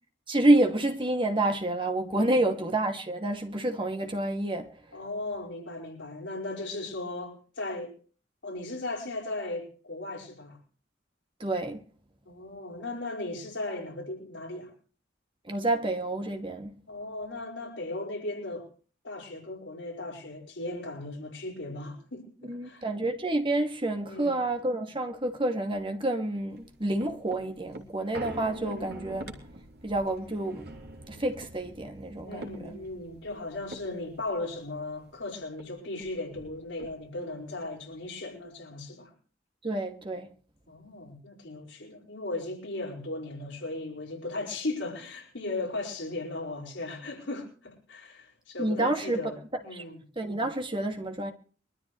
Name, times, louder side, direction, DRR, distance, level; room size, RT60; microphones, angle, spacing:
voice 1, 0.3-4.7 11.4-11.8 15.5-16.8 22.4-29.3 29.8-30.7 31.1-32.8 39.6-40.3 48.6-49.8 50.2-51.3, right 1 dB, 25° right, 2.3 m, -28 dB
voice 2, 2.1-2.5 4.9-7.9 8.4-10.6 12.3-14.7 16.9-18.7 19.0-22.9 24.1-24.4 28.6-29.1 32.2-39.1 40.7-50.0, left 2 dB, 70° left, 5.7 m, -37 dB
sound 1, 26.5-35.2 35.6-35.7 35.9-37.3 37.8-37.9, right 1 dB, 55° right, 3.3 m, -46 dB
24.0 x 13.5 x 3.2 m
head